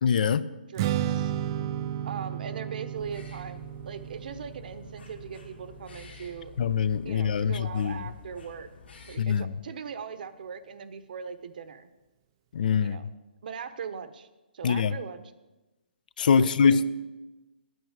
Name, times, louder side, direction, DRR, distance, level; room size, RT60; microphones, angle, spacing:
voice 1, 0.0-0.5 6.6-8.1 9.2-9.5 12.5-13.0 14.6-15.0 16.2-16.8, left 6 dB, 55° left, 17 dB, 0.5 m, -24 dB
voice 2, 0.7-1.3 2.0-6.5 7.0-8.7 9.1-11.9 12.8-13.1 13.4-14.3 14.5-15.3 16.4-16.8, right 6 dB, 55° right, 12 dB, 0.9 m, -40 dB
Strum, 0.8-7.1, right 11 dB, 25° right, 0.3 m, -33 dB
sound 1, 2.9-9.2, left 5 dB, 85° left, 3.0 m, -50 dB
9.3 x 9.2 x 7.3 m, 1.1 s
hypercardioid pair, 160°, 6 cm